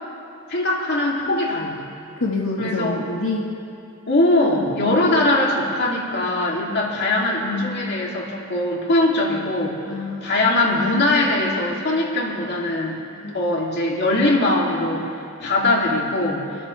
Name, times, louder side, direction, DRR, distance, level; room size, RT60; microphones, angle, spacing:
voice 1, 0.5-1.8 2.6-3.0 4.1-9.8 10.2-12.9 13.3-15.1 15.4-16.4, left 2 dB, 55° left, -2 dB, 2.6 m, -21 dB
voice 2, 2.2-3.5 4.8-5.0 9.9-10.3 13.2-13.4, left 3 dB, 90° left, -2 dB, 1.5 m, -26 dB
27.5 x 13.0 x 3.3 m, 2.5 s
head